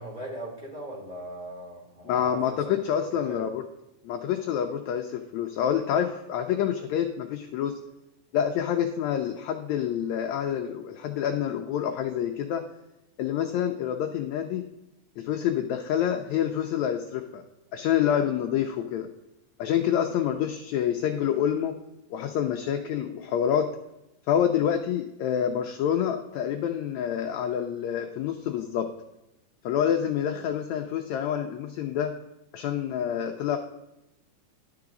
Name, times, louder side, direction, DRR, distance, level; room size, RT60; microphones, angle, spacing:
voice 1, 0.0-2.4 3.1-3.5, right 1 dB, 10° right, -5 dB, 3.0 m, -39 dB
voice 2, 2.1-3.6 4.0-7.8 8.3-12.6 13.2-14.6 15.2-17.4 17.7-19.1 19.6-21.8 22.1-23.7 24.3-28.9 29.6-32.1 32.5-33.6, left 9 dB, 80° left, 5 dB, 1.7 m, -27 dB
12.0 x 4.8 x 3.8 m, 0.91 s
omnidirectional pair, 3.8 m